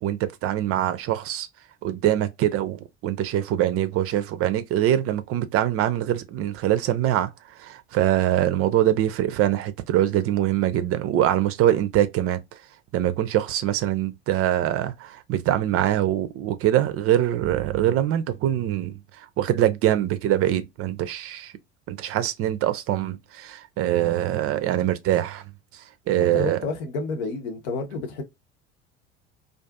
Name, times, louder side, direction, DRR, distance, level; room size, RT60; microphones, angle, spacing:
voice 1, 0.0-1.5 1.8-12.6 12.9-21.5 21.9-25.4 25.7-26.6, right 12 dB, 40° right, 0.5 m, -24 dB
voice 2, 26.3-28.2, left 3 dB, 70° left, 0.9 m, -30 dB
2.5 x 2.4 x 2.2 m
hypercardioid pair, 70°, 34 cm